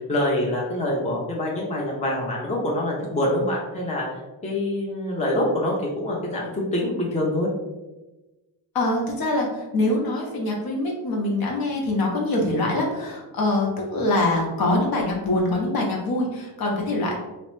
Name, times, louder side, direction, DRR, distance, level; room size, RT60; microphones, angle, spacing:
voice 1, 0.0-4.1 4.4-7.5, left 1 dB, 15° left, -3 dB, 0.6 m, -25 dB
voice 2, 8.7-17.1, left 2 dB, 50° left, -1 dB, 0.9 m, -24 dB
2.9 x 2.1 x 3.1 m, 1.1 s
cardioid pair, 90°, 45 cm